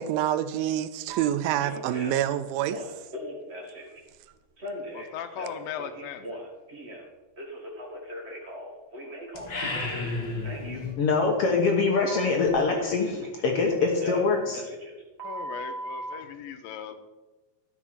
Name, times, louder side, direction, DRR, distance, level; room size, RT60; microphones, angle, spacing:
voice 1, 0.0-2.8, right 11 dB, 85° right, 13 dB, 2.4 m, -27 dB
Telephone, 1.1-1.2 1.6-2.3 2.6-4.0 4.6-7.0 7.4-10.1 10.4-10.8 12.1-13.4 13.8-16.1, equal, 30° right, 1.3 m, -39 dB
voice 2, 4.9-6.3 15.2-16.9, left 8 dB, 85° left, 9 dB, 2.6 m, -38 dB
sound 1, 9.3-10.9, left 3 dB, 40° left, 1.9 m, -32 dB
voice 3, 11.0-14.6, left 4 dB, 65° left, 1 dB, 1.5 m, -24 dB
13.0 x 6.2 x 5.9 m, 1.2 s
omnidirectional pair, 4.1 m